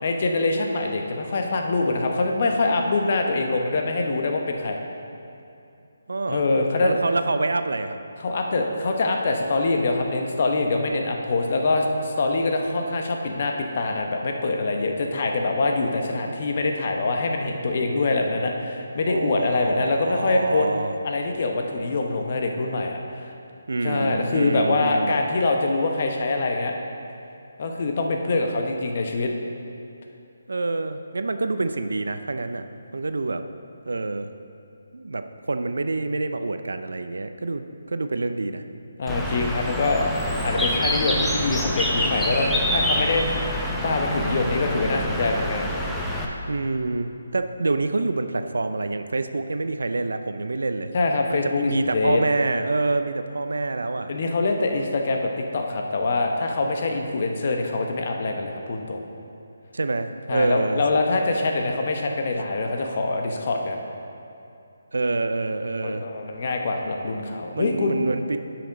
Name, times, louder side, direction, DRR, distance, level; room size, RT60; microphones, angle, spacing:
voice 1, 0.0-4.8 6.3-7.0 8.2-20.7 21.0-23.3 23.8-26.7 27.6-29.3 39.0-40.1 40.4-45.7 50.9-52.2 54.1-59.0 60.3-63.8 65.8-68.0, left 3 dB, 45° left, 2 dB, 0.9 m, -24 dB
voice 2, 6.1-6.4 6.8-8.0 19.1-20.9 23.7-25.2 30.5-32.6 32.9-33.4 33.9-34.3 34.9-37.6 37.9-38.6 46.5-50.9 51.3-54.1 59.7-60.8 64.9-66.0 67.1-68.4, right 3 dB, 75° right, 9 dB, 0.5 m, -27 dB
Bird, 39.1-46.3, equal, 5° left, 0.6 m, -26 dB
9.7 x 6.0 x 4.0 m, 2.7 s
figure-of-eight pair, 155°, 0 cm